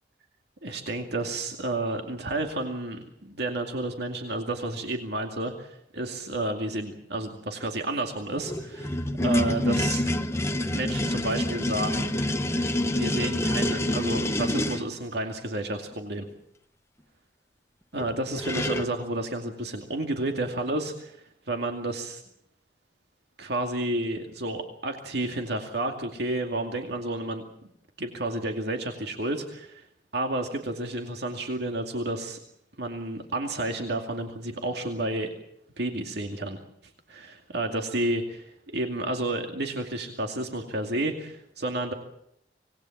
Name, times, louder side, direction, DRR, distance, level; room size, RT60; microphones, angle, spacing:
voice 1, 0.6-10.0 10.7-12.1 12.9-16.3 17.9-21.2 21.5-22.2 23.4-27.4 28.0-29.9 30.1-32.4 32.8-35.3 35.8-36.6 37.1-38.2 38.7-41.9, right 2 dB, 65° right, 4 dB, 2.4 m, -31 dB
sound 1, 8.3-14.9 18.0-18.1 18.3-18.9, left 1 dB, 15° left, 1.1 m, -27 dB
25.5 x 19.5 x 7.3 m, 0.72 s
head